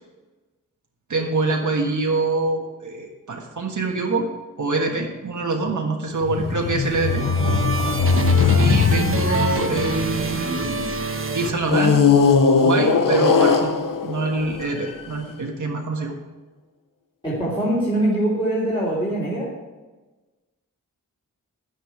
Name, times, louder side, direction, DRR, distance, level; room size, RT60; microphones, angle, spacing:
voice 1, 1.1-4.3 4.6-7.2 8.6-10.9 11.3-12.0 12.6-13.8 14.0-16.1, right 3 dB, 65° right, 0 dB, 1.6 m, -25 dB
sound 1, 6.2-10.9 11.7-15.1, left 5 dB, 75° left, 1.0 m, -20 dB
sound 2, 6.6-12.2, right 3 dB, 40° right, 1.0 m, -29 dB
voice 2, 17.2-19.5, right 1 dB, 15° left, -7 dB, 3.7 m, -23 dB
11.0 x 9.8 x 4.9 m, 1.2 s
wide cardioid pair, 85°, 33 cm